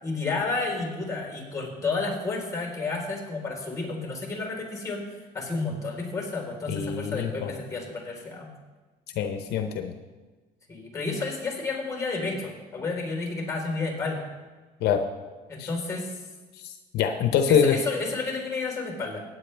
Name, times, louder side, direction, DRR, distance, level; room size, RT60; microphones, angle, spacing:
voice 1, 0.0-8.5 10.7-14.2 15.5-16.2 17.5-19.2, left 3 dB, 20° left, 0 dB, 4.1 m, -31 dB
voice 2, 6.7-7.5 9.2-9.9 14.8-15.0 15.6-15.7 16.5-17.8, left 7 dB, 75° left, 6 dB, 0.8 m, -25 dB
16.5 x 9.4 x 3.4 m, 1.3 s
cardioid pair, 110°, 17 cm